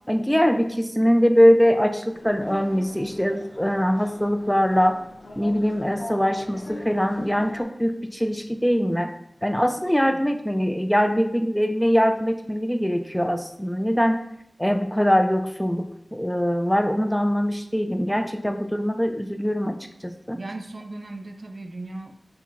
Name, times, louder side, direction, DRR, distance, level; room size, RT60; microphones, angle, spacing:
voice 1, 0.1-5.0 5.4-9.1 9.4-14.2 14.6-20.4, equal, 5° left, 6 dB, 0.4 m, -22 dB
sound 1, 2.1-7.6, left 1 dB, 80° left, 0.6 m, -41 dB
voice 2, 20.3-22.2, right 2 dB, 60° right, 5 dB, 0.4 m, -37 dB
6.1 x 2.3 x 3.6 m, 0.75 s
wide cardioid pair, 50°, 0 cm